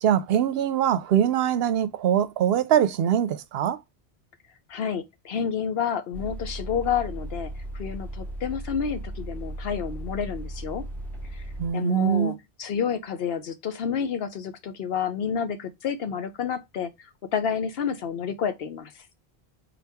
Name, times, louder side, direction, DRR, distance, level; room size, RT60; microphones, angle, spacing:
voice 1, 0.0-3.8 11.6-12.4, right 10 dB, 75° right, 0.8 m, -23 dB
voice 2, 4.7-10.8 11.3-11.4 11.7-16.9 17.3-18.9, left 7 dB, 70° left, 0.9 m, -29 dB
sound 1, 6.1-11.7, right 1 dB, ahead, 0.7 m, -36 dB
4.0 x 2.8 x 3.4 m
omnidirectional pair, 1.0 m